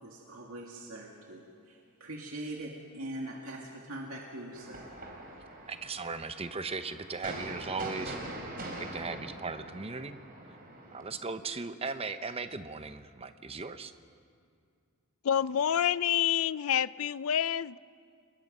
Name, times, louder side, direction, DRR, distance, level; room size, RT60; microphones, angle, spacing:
voice 1, 0.0-4.8, right 1 dB, 70° right, -1 dB, 2.2 m, -42 dB
sound 1, 4.5-11.0, right 1 dB, 40° right, 3.7 m, -43 dB
voice 2, 5.7-8.2 8.8-10.2 10.9-13.9, right 4 dB, 25° right, 10 dB, 0.8 m, -37 dB
voice 3, 15.2-17.8, left 9 dB, 65° left, 18 dB, 0.4 m, -28 dB
29.5 x 20.0 x 5.4 m, 2.3 s
head